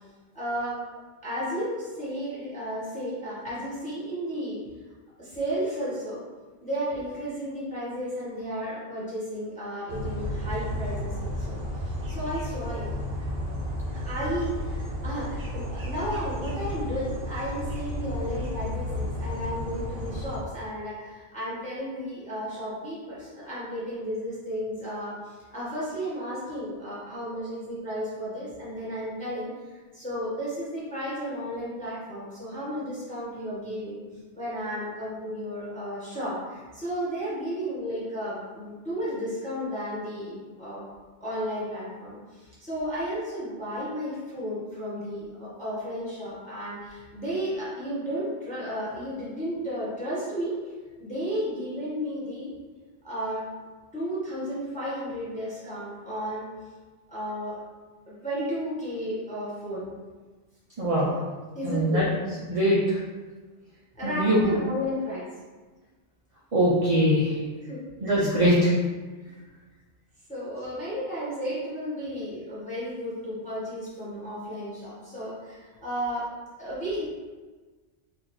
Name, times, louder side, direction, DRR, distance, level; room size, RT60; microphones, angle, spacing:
voice 1, 0.3-0.8 1.2-4.6 5.2-6.2 6.6-12.9 13.9-29.5 29.9-34.0 34.3-40.8 41.2-50.5 51.0-52.5 53.0-53.4 53.9-56.5 57.1-57.6 58.1-59.8 61.5-62.0 63.9-65.3 67.6-67.8 68.1-68.3 69.2-69.3 70.3-76.3 76.6-77.1, equal, 5° left, -8 dB, 1.1 m, -33 dB
sound 1, 9.9-20.4, equal, 60° right, 0.9 m, -32 dB
voice 2, 60.8-61.2 61.6-62.1 62.5-63.0 64.0-64.5 66.5-67.4 68.0-68.8, equal, 40° right, -7 dB, 0.6 m, -22 dB
4.0 x 2.9 x 3.0 m, 1.3 s
omnidirectional pair, 1.2 m